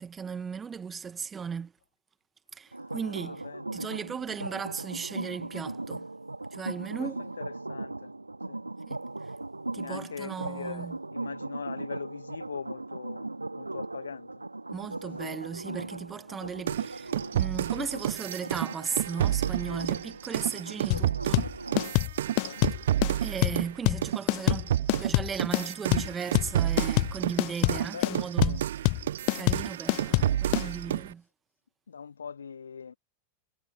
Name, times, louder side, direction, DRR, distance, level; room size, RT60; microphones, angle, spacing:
voice 1, 0.0-1.7 2.5-3.4 3.7-6.1 6.5-7.2 8.9-9.0 9.7-11.0 14.7-21.5 23.2-28.6 29.3-31.2, right 6 dB, 20° right, 1.7 m, -36 dB
voice 2, 2.7-3.8 7.0-7.1 7.4-8.1 8.5-8.6 9.8-14.3 22.3-22.6 27.6-28.7 29.3-29.6 30.1-30.3 31.9-32.9, left 6 dB, 70° left, 1.7 m, -42 dB
sound 1, 2.7-21.9, right 2 dB, 85° right, 2.8 m, -39 dB
sound 2, 16.7-23.7 24.0-31.1, right 11 dB, 60° right, 1.0 m, -30 dB
sound 3, 20.9-30.7, left 40 dB or more, 45° left, 0.3 m, -26 dB
figure-of-eight pair, 90°, 0 cm